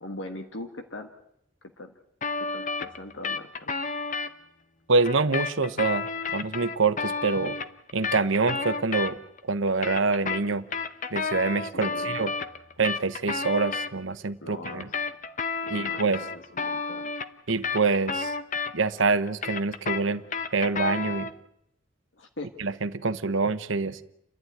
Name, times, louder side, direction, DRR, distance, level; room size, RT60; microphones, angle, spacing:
voice 1, 0.0-1.1 1.8-1.9 2.4-3.7 11.7-12.2 14.4-14.9 15.6-17.1 22.1-22.5, left 2 dB, 60° left, 5 dB, 1.5 m, -41 dB
sound 1, 2.2-4.3 5.0-9.4 9.7-13.9 14.6-19.0 19.3-21.4, left 4 dB, 35° left, 0.8 m, -31 dB
voice 2, 4.9-7.6 7.9-9.2 9.5-10.6 11.1-12.3 12.8-14.9 15.7-16.3 17.5-18.3 18.7-20.2 20.5-21.3 22.6-24.0, right 4 dB, 65° right, 11 dB, 1.0 m, -26 dB
29.5 x 12.0 x 9.5 m, 0.78 s
head